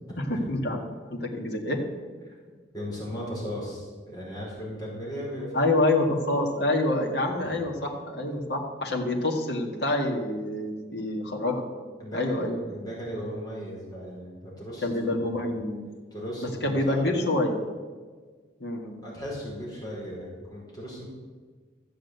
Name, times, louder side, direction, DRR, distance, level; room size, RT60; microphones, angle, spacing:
voice 1, 0.2-0.8 1.1-1.8 5.5-11.7 12.1-12.6 14.8-15.9 16.6-17.6 18.6-19.0, left 2 dB, 60° left, 0 dB, 1.9 m, -27 dB
voice 2, 2.7-5.7 7.4-7.5 12.0-14.9 15.1-15.5 16.1-17.1 19.0-21.1, equal, 20° left, -5 dB, 4.8 m, -37 dB
14.0 x 7.6 x 8.1 m, 1.5 s
head